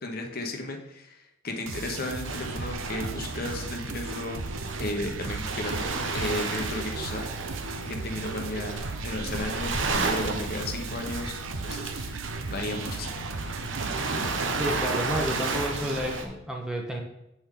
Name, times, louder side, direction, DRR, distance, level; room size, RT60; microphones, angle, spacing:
voice 1, 0.0-4.4 4.8-5.8 6.1-7.3 7.8-11.3 11.6-13.2, left 2 dB, 50° left, 3 dB, 1.1 m, -34 dB
sound 1, 1.7-16.0, right 3 dB, 85° right, 0.7 m, -37 dB
Waves surf, 2.2-16.2, right 3 dB, 70° right, 1.0 m, -33 dB
voice 2, 14.6-17.0, equal, 5° right, 1 dB, 0.9 m, -31 dB
7.9 x 7.2 x 3.8 m, 0.85 s
head